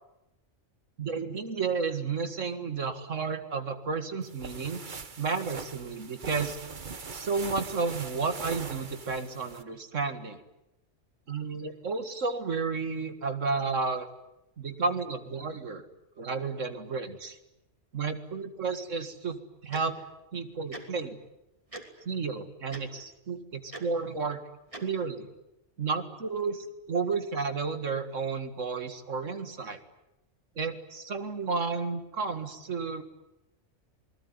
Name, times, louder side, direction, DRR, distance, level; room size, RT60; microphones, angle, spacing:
voice 1, 1.0-4.8 5.2-6.6 7.1-10.4 11.3-14.1 14.6-15.8 16.2-17.4 17.9-20.0 20.3-21.2 22.1-24.4 24.8-25.3 25.8-29.8 30.6-33.0, right 4 dB, 85° right, 9 dB, 2.3 m, -32 dB
sound 1, 4.2-9.6, right 5 dB, 40° right, 1.2 m, -41 dB
Tick-tock, 19.7-19.8 20.7-20.8 21.7-21.8 22.7-22.8 23.7-23.8 24.7-24.8, right 2 dB, 25° right, 3.2 m, -40 dB
27.5 x 20.5 x 9.8 m, 0.92 s
omnidirectional pair, 1.3 m